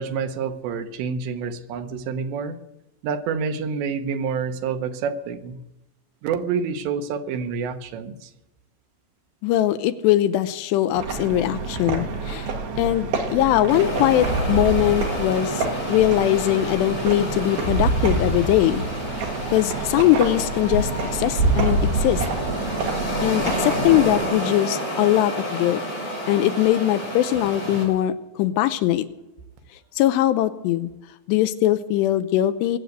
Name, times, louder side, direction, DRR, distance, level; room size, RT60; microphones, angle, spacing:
voice 1, 0.0-2.6 3.0-5.6 6.2-8.3, right 6 dB, 85° right, 7 dB, 3.2 m, -28 dB
voice 2, 9.4-12.5 12.8-15.6 15.9-18.9 19.5-22.2 23.2-25.8 26.3-29.1 30.0-30.9 31.3-32.8, left 13 dB, 80° left, 12 dB, 2.8 m, -21 dB
sound 1, 11.0-24.2, right 3 dB, 65° right, 3.5 m, -27 dB
sound 2, 13.7-27.8, equal, 25° left, 6.4 m, -30 dB
sound 3, 18.1-24.2 24.7-24.8 26.0-26.2, left 5 dB, 50° left, 2.1 m, -42 dB
21.5 x 7.9 x 8.0 m, 0.91 s
omnidirectional pair, 5.0 m